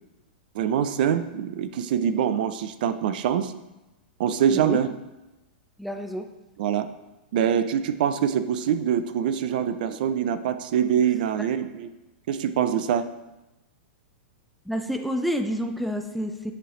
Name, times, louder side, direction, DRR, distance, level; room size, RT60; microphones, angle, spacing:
voice 1, 0.5-3.5 4.2-4.9 6.6-6.9 7.3-11.9 12.3-13.0, right 9 dB, 60° right, 11 dB, 0.4 m, -24 dB
voice 2, 5.8-6.3 14.7-16.5, equal, ahead, 5 dB, 0.4 m, -29 dB
9.5 x 3.3 x 3.8 m, 1.0 s
hypercardioid pair, 135°, 5 cm